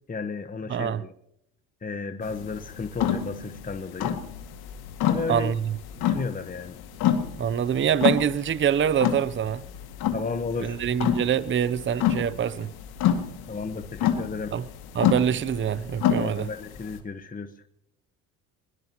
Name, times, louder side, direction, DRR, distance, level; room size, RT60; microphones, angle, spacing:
voice 1, 0.1-1.1 1.8-4.2 5.0-5.5 6.0-6.7 10.1-10.8 13.5-14.5 16.1-17.5, left 4 dB, 20° left, 1.1 m, -33 dB
voice 2, 0.7-1.0 5.3-5.8 7.4-9.6 10.6-12.7 14.5-14.6 14.9-16.5, right 8 dB, 30° right, 0.6 m, -25 dB
sound 1, 2.2-17.0, left 9 dB, 75° left, 2.2 m, -29 dB
21.5 x 21.5 x 3.0 m
supercardioid pair, 75°, 38 cm